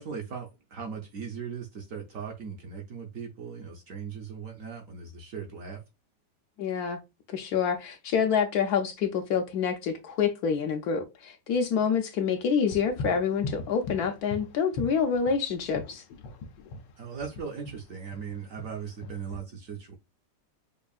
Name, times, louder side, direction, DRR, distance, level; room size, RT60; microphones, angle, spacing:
voice 1, 0.0-5.8 17.0-20.0, right 6 dB, 65° right, 0.9 m, -38 dB
voice 2, 6.6-7.0 7.3-16.0, left 6 dB, 70° left, 1.0 m, -27 dB
sound 1, 12.7-19.4, left 2 dB, 90° left, 1.3 m, -39 dB
5.2 x 2.4 x 2.3 m
omnidirectional pair, 1.9 m